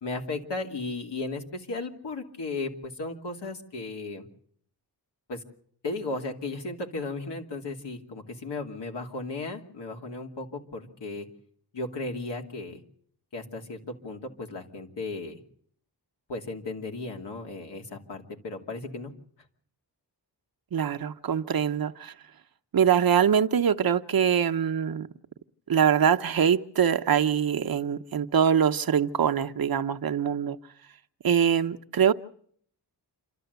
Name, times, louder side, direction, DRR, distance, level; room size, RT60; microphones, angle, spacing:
voice 1, 0.0-4.3 5.3-5.4 5.8-11.3 11.7-12.8 13.3-15.4 16.3-19.1, left 3 dB, 80° left, 2.8 m, -35 dB
voice 2, 20.7-22.1 22.7-25.1 25.7-30.6 31.2-32.1, right 8 dB, 60° right, 0.9 m, -23 dB
28.5 x 12.5 x 8.1 m
wide cardioid pair, 115°, 41 cm